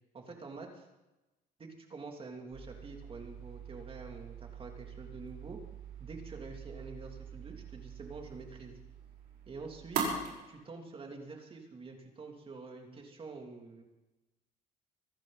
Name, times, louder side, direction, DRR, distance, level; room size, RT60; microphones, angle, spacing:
voice 1, 0.1-0.8 1.6-5.6 6.0-8.8 9.5-10.2 10.5-13.8, right 3 dB, 35° right, 2 dB, 3.1 m, -47 dB
sound 1, 2.5-10.3, right 5 dB, 70° right, 5.5 m, -42 dB
25.0 x 11.5 x 4.2 m, 1.0 s
cardioid pair, 110°, 17 cm